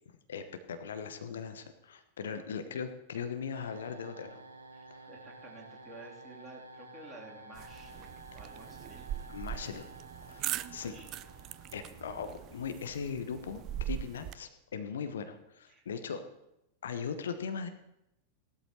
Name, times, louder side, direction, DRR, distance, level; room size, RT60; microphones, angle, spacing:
voice 1, 0.3-4.4 4.9-5.1 9.3-9.9 10.2-10.9 11.7-16.2 16.8-17.7, left 6 dB, 65° left, 9 dB, 1.0 m, -39 dB
sound 1, 3.5-12.5, right 2 dB, 70° right, 1.2 m, -52 dB
voice 2, 4.7-9.0 10.7-11.1 15.7-15.8, right 3 dB, 15° right, -4 dB, 3.4 m, -52 dB
sound 2, 7.5-14.3, right 12 dB, 35° right, 0.5 m, -41 dB
17.0 x 12.5 x 3.2 m, 0.84 s
figure-of-eight pair, 90°, 0 cm